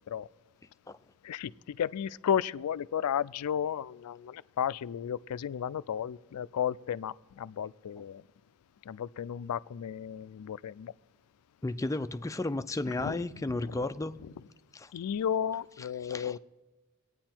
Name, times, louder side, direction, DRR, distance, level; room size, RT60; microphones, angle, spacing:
voice 1, 1.2-8.2 8.9-10.9 12.9-13.2 13.6-13.8 14.2-14.3 14.9-16.4, left 8 dB, 90° left, 0.4 m, -33 dB
voice 2, 11.6-14.2 14.7-14.9 16.0-16.4, left 2 dB, 15° left, 0.4 m, -33 dB
24.5 x 9.2 x 4.4 m
head